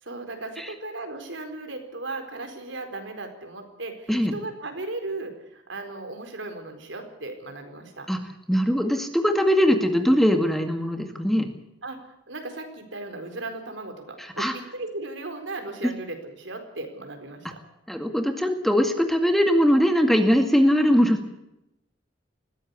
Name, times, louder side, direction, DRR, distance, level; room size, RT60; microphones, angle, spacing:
voice 1, 0.0-8.1 11.8-17.6, right 2 dB, 75° right, 6 dB, 4.4 m, -36 dB
voice 2, 8.5-11.5 14.4-14.5 17.9-21.3, equal, ahead, 6 dB, 2.1 m, -21 dB
21.0 x 16.0 x 8.3 m, 0.86 s
head